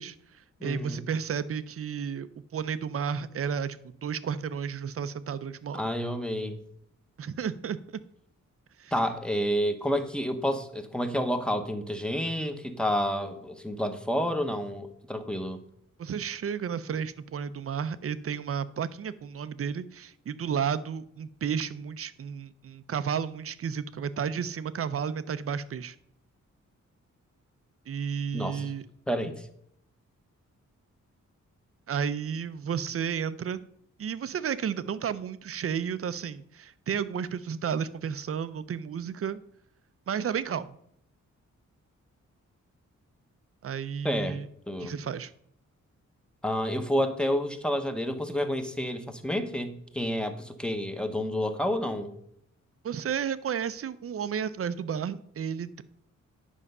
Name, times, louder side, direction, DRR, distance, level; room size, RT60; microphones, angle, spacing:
voice 1, 0.0-5.8 7.2-8.0 8.8-8.9 16.0-26.0 27.9-28.8 31.9-33.6 34.0-39.4 40.1-40.7 43.6-44.5 44.8-45.3 52.8-55.8, right 7 dB, 50° right, 14 dB, 0.6 m, -32 dB
voice 2, 0.6-1.0 5.7-6.6 8.9-15.6 28.3-28.6 29.1-29.5 44.0-44.4 44.7-44.9 46.4-52.1, equal, 5° left, 7 dB, 0.9 m, -29 dB
9.9 x 5.6 x 5.4 m, 0.71 s
wide cardioid pair, 125°, 30 cm